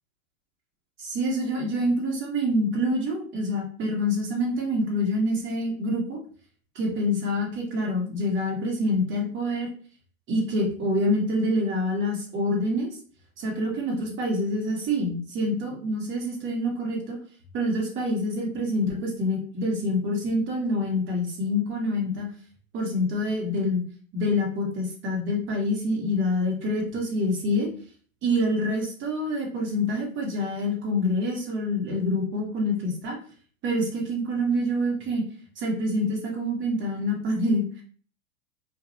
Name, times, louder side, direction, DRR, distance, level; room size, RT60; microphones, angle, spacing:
voice 1, 1.0-6.2 6.7-9.7 10.3-12.9 13.4-17.2 17.5-22.3 22.7-23.8 24.1-27.7 28.2-33.2 33.6-35.2 35.6-37.6, left 1 dB, 30° right, -1 dB, 1.0 m, -26 dB
2.5 x 2.3 x 2.8 m, 0.43 s
hypercardioid pair, 110°, 40 cm